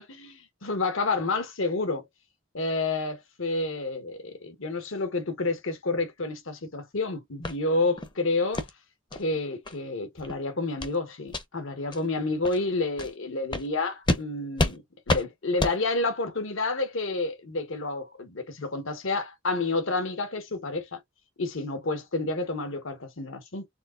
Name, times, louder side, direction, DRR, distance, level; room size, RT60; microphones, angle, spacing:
voice 1, 0.0-2.1 2.5-8.7 9.1-21.0 21.4-23.7, left 3 dB, 70° left, 1.1 m, -29 dB
sound 1, 7.4-7.6 8.0-8.1 8.5-8.7 9.1-9.2 9.6-9.8 10.2-10.3 10.8-11.0 11.3-11.4 11.9-12.0 12.4-12.6 13.0-13.1 13.5-13.7 14.1-14.2 14.6-14.8 15.1-15.2 15.6-15.8, left 2 dB, 20° left, 0.6 m, -28 dB
4.4 x 3.7 x 2.5 m
head